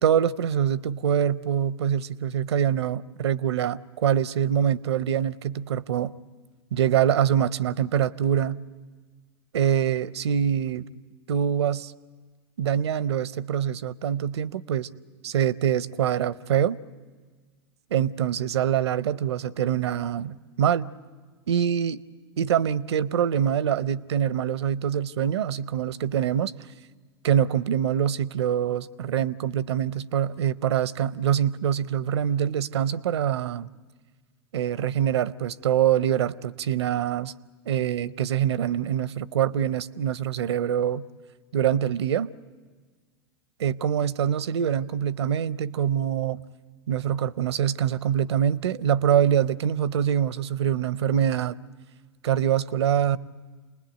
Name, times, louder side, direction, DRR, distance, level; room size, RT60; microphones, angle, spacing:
voice 1, 0.0-6.1 6.7-8.6 9.5-10.9 11.3-11.9 12.6-14.9 15.2-16.8 17.9-20.9 21.5-22.0 22.4-26.5 27.2-33.7 34.5-37.3 37.7-41.0 41.5-42.3 43.6-46.4 46.9-51.6 52.2-53.2, right 9 dB, 75° right, 18 dB, 0.7 m, -24 dB
28.5 x 20.5 x 9.1 m, 1.5 s
hypercardioid pair, 100°, 14 cm